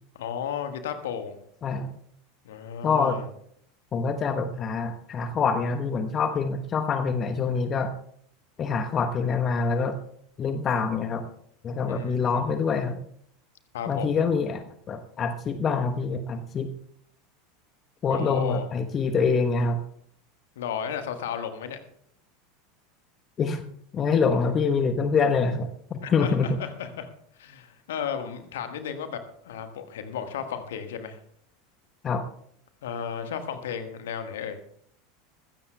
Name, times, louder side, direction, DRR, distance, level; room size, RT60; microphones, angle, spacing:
voice 1, 0.1-1.4 2.4-3.3 11.9-12.4 13.7-14.2 18.1-18.7 20.5-21.8 26.0-27.1 27.4-31.2 32.8-34.6, left 8 dB, 65° left, 8 dB, 1.5 m, -34 dB
voice 2, 2.8-3.2 3.9-7.9 8.6-10.0 10.4-11.2 11.6-13.0 13.9-16.7 18.0-19.8 23.4-23.6 23.9-26.6 32.0-32.2, left 5 dB, 30° left, 8 dB, 1.0 m, -25 dB
21.0 x 15.5 x 2.3 m, 0.66 s
figure-of-eight pair, 80°, 0 cm